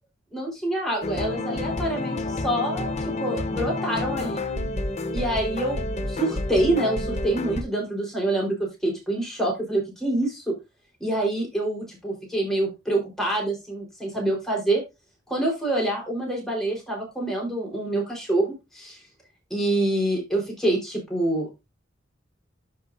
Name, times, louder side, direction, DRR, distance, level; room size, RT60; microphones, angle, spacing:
voice 1, 0.3-4.4 5.1-5.8 6.1-10.5 11.0-14.8 15.3-19.0 19.5-21.7, right 1 dB, ahead, -2 dB, 3.9 m, -26 dB
sound 1, 1.0-7.6, left 2 dB, 35° left, 0.9 m, -29 dB
11.0 x 5.4 x 2.6 m, 0.23 s
head